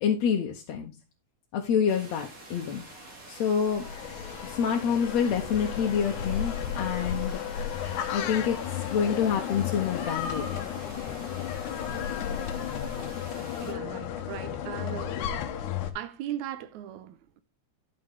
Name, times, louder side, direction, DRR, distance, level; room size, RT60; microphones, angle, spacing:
voice 1, 0.0-0.9 1.5-2.8 3.3-3.9 4.4-7.4 8.1-10.6, left 7 dB, 70° left, 2.2 m, -27 dB
sound 1, 1.9-13.7, right 2 dB, 30° right, 2.6 m, -47 dB
sound 2, 3.6-15.9, left 9 dB, 85° left, 2.5 m, -33 dB
voice 2, 13.3-15.2 16.0-17.4, right 11 dB, 85° right, 2.2 m, -38 dB
11.5 x 6.6 x 3.7 m
omnidirectional pair, 3.4 m